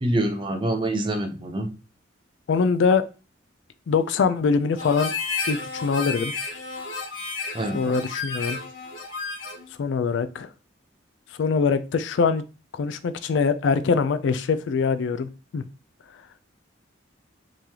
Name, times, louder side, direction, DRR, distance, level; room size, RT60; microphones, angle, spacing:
voice 1, 0.0-1.7 7.5-7.8, right 1 dB, 25° right, 5 dB, 0.6 m, -25 dB
voice 2, 2.5-3.1 3.9-5.1 5.5-6.3 7.7-8.6 9.8-10.5 11.4-12.4 12.7-15.6, left 5 dB, 65° left, 11 dB, 0.3 m, -23 dB
Harmonica, 4.8-9.7, left 4 dB, 85° left, 1.1 m, -32 dB
3.7 x 3.1 x 2.8 m, 0.32 s
head